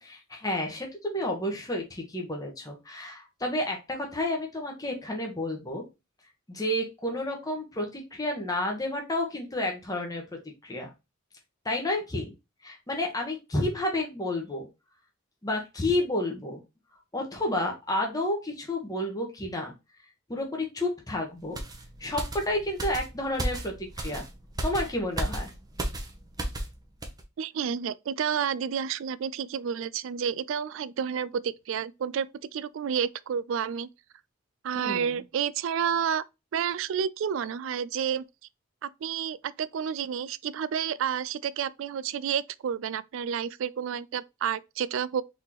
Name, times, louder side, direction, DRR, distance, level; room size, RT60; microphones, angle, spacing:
voice 1, 0.0-5.8 6.5-10.2 10.6-10.9 11.6-12.3 12.6-14.7 15.4-16.6 17.1-19.7 20.3-21.6 22.0-24.2 24.6-25.5 34.8-35.1, left 1 dB, 15° left, 1.0 m, -30 dB
sound 1, 21.5-26.7 27.0-27.2, right 1 dB, 20° right, 0.7 m, -34 dB
voice 2, 27.4-32.3 32.5-33.9 34.6-36.2 36.5-38.2 38.8-45.2, right 8 dB, 65° right, 0.3 m, -30 dB
4.1 x 3.6 x 2.9 m
head